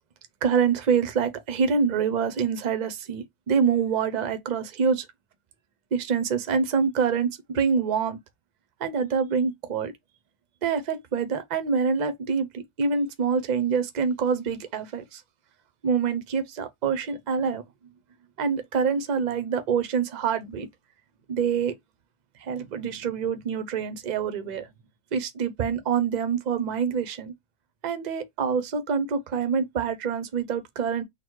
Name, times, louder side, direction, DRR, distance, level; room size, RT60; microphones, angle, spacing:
voice 1, 0.4-5.1 5.9-8.2 8.8-9.9 10.6-12.5 12.8-15.2 15.8-17.6 18.4-20.7 21.3-21.7 22.4-24.7 25.1-27.3 27.8-31.0, right 6 dB, 60° right, 0.4 m, -26 dB
4.0 x 2.1 x 4.4 m
omnidirectional pair, 1.6 m